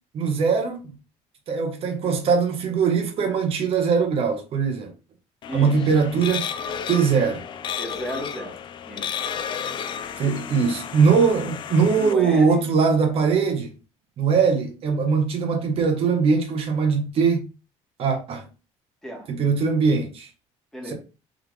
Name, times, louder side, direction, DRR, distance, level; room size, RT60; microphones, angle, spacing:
voice 1, 0.1-0.9 1.5-4.9 5.5-6.5 6.9-7.4 10.2-13.7 14.2-17.5 18.0-18.4 19.3-20.3 20.9-21.0, right 5 dB, 45° right, 1.2 m, -21 dB
sound 1, 5.4-12.1, left 7 dB, 40° left, 0.4 m, -33 dB
voice 2, 5.5-6.0 7.8-9.3 12.0-12.7 19.0-19.3 20.7-20.9, equal, 5° left, 1.5 m, -34 dB
3.7 x 3.4 x 3.2 m
cardioid pair, 150°, 13 cm